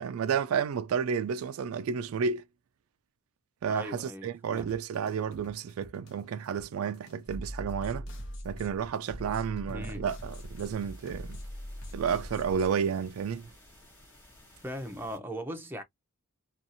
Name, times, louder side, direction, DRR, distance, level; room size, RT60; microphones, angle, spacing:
voice 1, 0.0-2.4 3.6-8.1 8.4-11.4 11.9-13.5, right 7 dB, 80° right, 0.3 m, -31 dB
voice 2, 3.7-4.8 9.7-10.1 14.6-15.8, equal, 10° right, 0.5 m, -39 dB
sound 1, 4.6-12.6, equal, 80° left, 0.9 m, -53 dB
sound 2, 7.3-12.7, equal, 60° left, 0.8 m, -41 dB
sound 3, 10.2-15.2, left 1 dB, 10° left, 1.2 m, -56 dB
2.6 x 2.4 x 2.6 m
head